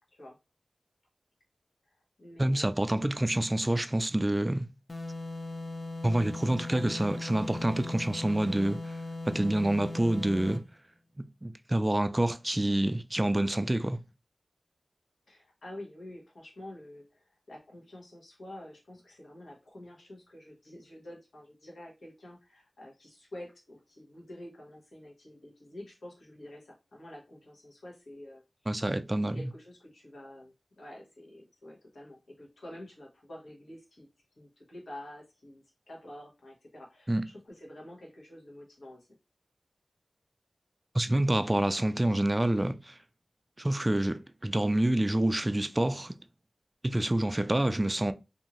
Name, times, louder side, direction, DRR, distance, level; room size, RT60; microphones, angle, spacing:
voice 1, 1.8-3.3 6.7-6.9 15.3-28.4 29.2-34.1 34.4-39.1, left 1 dB, 85° left, 1.1 m, -48 dB
voice 2, 2.4-4.7 6.0-9.0 9.3-10.6 11.2-14.0 28.7-29.5 37.1-37.2 40.9-43.0 43.6-46.1 46.8-48.1, right 1 dB, 25° right, 0.3 m, -27 dB
sound 1, 4.9-10.7, left 2 dB, 50° left, 0.5 m, -39 dB
2.6 x 2.6 x 2.9 m
cardioid pair, 45°, 0 cm